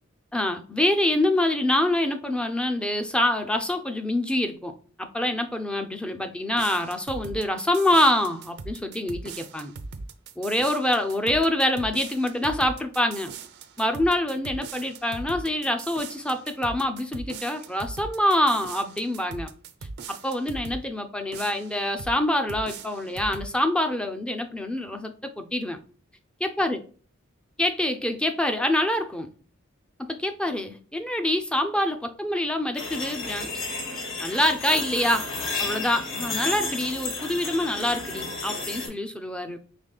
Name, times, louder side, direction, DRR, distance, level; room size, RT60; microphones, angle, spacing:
voice 1, 0.3-4.7 5.0-9.7 10.4-13.3 13.8-19.5 20.1-25.8 26.4-26.8 27.6-29.3 30.0-33.5 34.2-35.3 35.6-39.6, left 1 dB, 5° left, 0.5 m, -25 dB
sound 1, 6.5-20.8 21.3-22.2 22.5-23.5, right 4 dB, 55° right, 0.5 m, -40 dB
sound 2, 32.7-38.9, left 3 dB, 70° left, 1.4 m, -32 dB
5.1 x 3.6 x 2.3 m
head